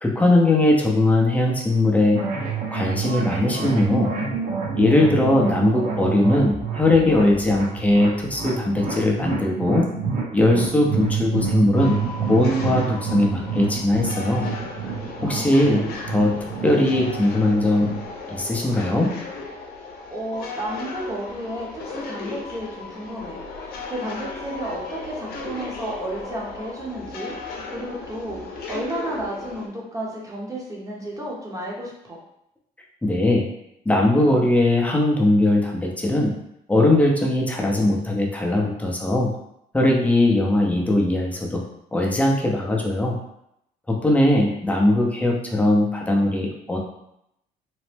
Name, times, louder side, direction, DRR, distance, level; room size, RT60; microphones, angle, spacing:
voice 1, 0.0-2.2 2.7-4.1 4.8-9.9 10.3-12.0 12.3-14.5 15.2-15.8 16.1-16.3 16.6-17.9 18.3-19.1 33.0-33.5 33.9-36.3 36.7-39.3 39.7-41.6 41.9-43.2 43.9-46.8, left 1 dB, 10° left, -1 dB, 0.6 m, -20 dB
sound 1, 2.1-18.1, right 5 dB, 50° right, 0.8 m, -28 dB
sound 2, 11.7-29.7, left 3 dB, 70° left, 0.7 m, -36 dB
voice 2, 15.2-15.8 19.9-32.2, right 1 dB, 20° right, -3 dB, 0.8 m, -32 dB
3.0 x 2.0 x 3.2 m, 0.79 s
cardioid pair, 110°, 17 cm